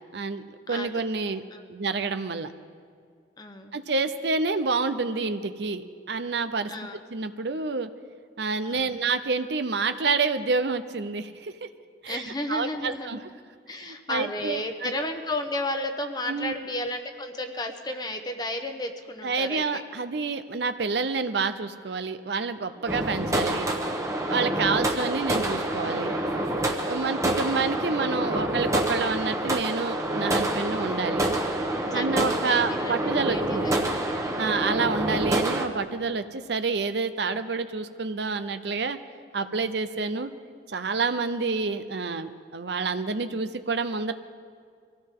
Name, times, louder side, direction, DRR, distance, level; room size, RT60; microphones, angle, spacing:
voice 1, 0.1-0.4 0.7-1.4 1.7-2.5 3.7-6.7 7.1-7.9 8.4-11.7 12.0-12.2 12.5-13.2 13.8-14.9 16.3-16.5 19.2-23.7 24.3-26.1 26.8-31.3 31.9-33.7 34.4-39.0 39.3-40.3 40.7-44.1, right 4 dB, 65° right, 10 dB, 0.7 m, -28 dB
voice 2, 3.4-3.8 6.7-7.0 8.7-9.0 12.1-13.2 13.7-19.8 27.3-27.6 31.9-34.7 39.5-39.7, left 1 dB, 20° left, 6 dB, 1.0 m, -33 dB
sound 1, 22.9-35.7, right 1 dB, 15° right, 1.1 m, -27 dB
24.0 x 16.0 x 3.8 m, 2.1 s
head